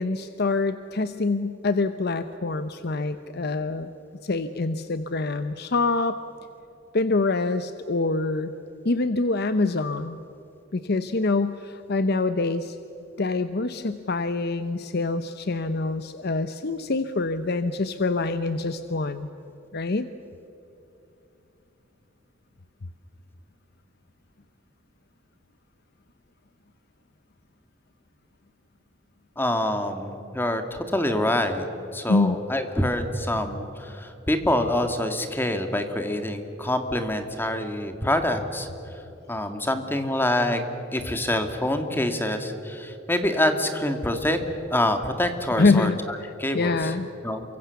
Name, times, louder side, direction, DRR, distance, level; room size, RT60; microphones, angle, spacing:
voice 1, 0.0-3.9 4.2-6.2 6.9-8.5 8.8-10.2 10.7-12.8 13.2-19.3 19.7-20.1 32.1-32.4 45.6-47.1, left 3 dB, 55° left, 11 dB, 0.8 m, -25 dB
voice 2, 29.4-31.6 31.9-38.7 39.3-40.6 40.9-44.4 44.7-46.9 47.2-47.4, left 1 dB, 10° left, 6 dB, 2.0 m, -26 dB
28.5 x 24.0 x 7.0 m, 3.0 s
head